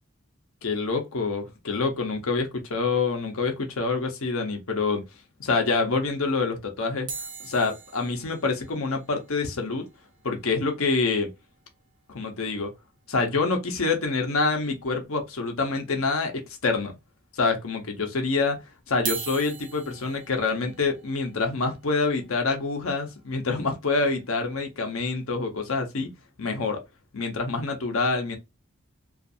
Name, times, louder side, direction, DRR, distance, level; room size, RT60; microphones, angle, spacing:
voice 1, 0.6-5.0 5.4-7.1 7.4-9.8 10.2-11.3 12.1-12.7 13.1-16.3 16.6-17.0 17.3-18.6 18.9-26.1 26.4-26.8 27.1-28.4, left 4 dB, 85° left, 0.8 m, -26 dB
sound 1, 7.1-11.4 11.7-11.8 12.0-12.2 12.6-12.7 14.0-14.1 14.8-15.3 15.8-15.9 16.8-16.9 18.9-25.0 25.5-25.8, right 6 dB, 40° right, 0.6 m, -41 dB
2.5 x 2.4 x 2.6 m
head